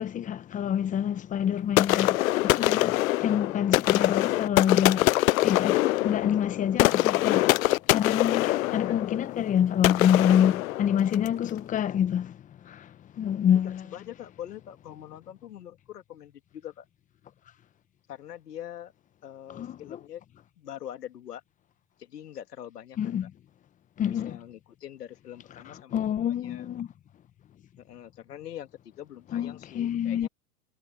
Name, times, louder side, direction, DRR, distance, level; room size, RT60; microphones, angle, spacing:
voice 1, 0.0-7.6 7.9-8.5 8.7-13.9 19.5-20.0 23.0-23.3 24.0-24.4 25.7-26.9 29.3-30.3, left 9 dB, 15° left, 0.9 m, -27 dB
sound 1, 1.8-11.4, left 17 dB, 60° left, 0.5 m, -24 dB
voice 2, 8.2-9.1 13.4-16.9 18.1-18.9 19.2-20.2 20.6-21.4 22.0-23.1 24.1-26.7 27.8-30.3, left 10 dB, 80° left, 2.6 m, -43 dB
hypercardioid pair, 125°, 46 cm